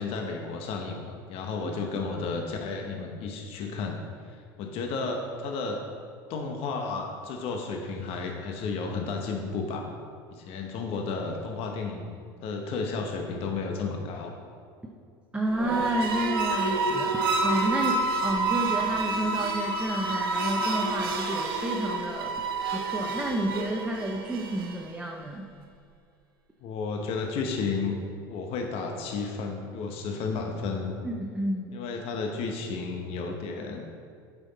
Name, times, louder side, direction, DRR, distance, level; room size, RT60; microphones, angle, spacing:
voice 1, 0.0-5.8 6.3-9.9 10.3-12.1 12.4-14.3 26.6-28.0 28.3-31.0 31.7-33.8, left 4 dB, 55° left, 2 dB, 0.9 m, -32 dB
voice 2, 15.3-22.3 22.7-25.5 31.0-31.8, right 1 dB, 10° right, 0 dB, 0.7 m, -30 dB
sound 1, 15.5-24.9, right 3 dB, 85° right, 0.9 m, -28 dB
8.1 x 5.8 x 4.0 m, 2.3 s
hypercardioid pair, 90°, 12 cm